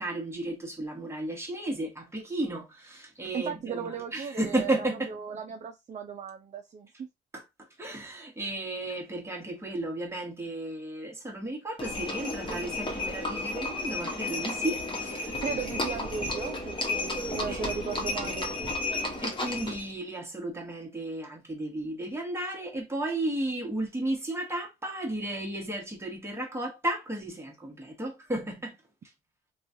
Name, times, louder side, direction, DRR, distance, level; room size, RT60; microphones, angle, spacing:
voice 1, 0.0-5.2 7.3-7.4 7.8-15.4 17.5-17.6 19.2-28.8, right 1 dB, 15° right, 1.2 m, -34 dB
voice 2, 3.3-4.8 5.1-7.1 15.4-18.7, right 6 dB, 35° right, 0.5 m, -36 dB
Livestock farm animals working animals, 11.8-19.9, left 2 dB, 25° left, 1.1 m, -32 dB
3.1 x 2.4 x 2.6 m
cardioid pair, 90°, 20 cm